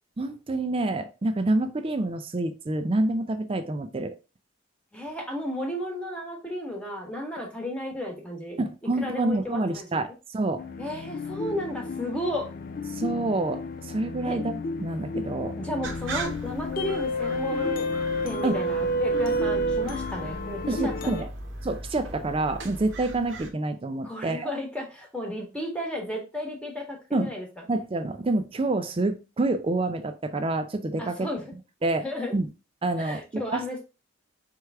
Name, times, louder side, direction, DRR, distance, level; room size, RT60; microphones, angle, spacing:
voice 1, 0.2-4.1 8.6-10.6 12.9-15.6 18.4-18.6 20.7-21.3 21.6-24.5 27.1-27.3 27.7-31.3 31.8-32.1 32.3-32.5 32.8-33.6, right 2 dB, 25° right, 0.4 m, -27 dB
voice 2, 4.9-8.6 9.0-10.0 10.8-12.5 14.2-14.4 15.6-17.9 18.2-21.2 24.0-27.5 31.0-31.4 32.0-32.3 33.0-33.8, left 1 dB, 5° left, 1.1 m, -33 dB
sound 1, 10.6-21.2, equal, 45° left, 0.4 m, -30 dB
sound 2, 15.8-23.5, right 2 dB, 60° right, 0.8 m, -39 dB
4.5 x 3.3 x 3.4 m
head